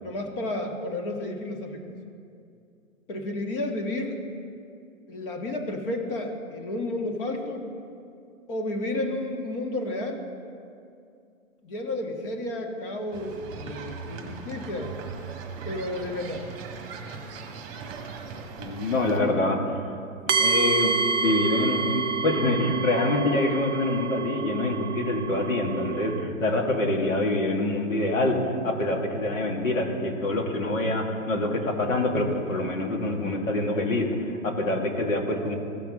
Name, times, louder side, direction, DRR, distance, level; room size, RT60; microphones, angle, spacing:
voice 1, 0.0-2.0 3.1-4.2 5.1-7.7 8.5-10.2 11.6-15.0 15.6-16.4 30.8-30.9, left 1 dB, 40° left, 2 dB, 1.6 m, -32 dB
sound 1, 13.1-19.2, right 5 dB, 25° right, 1.1 m, -39 dB
voice 2, 18.6-19.6 20.4-28.4 28.6-35.6, left 2 dB, 70° left, 1 dB, 2.1 m, -25 dB
sound 2, 20.3-26.2, right 5 dB, 60° right, 0.6 m, -28 dB
16.5 x 5.9 x 3.7 m, 2.4 s
hypercardioid pair, 150°, 41 cm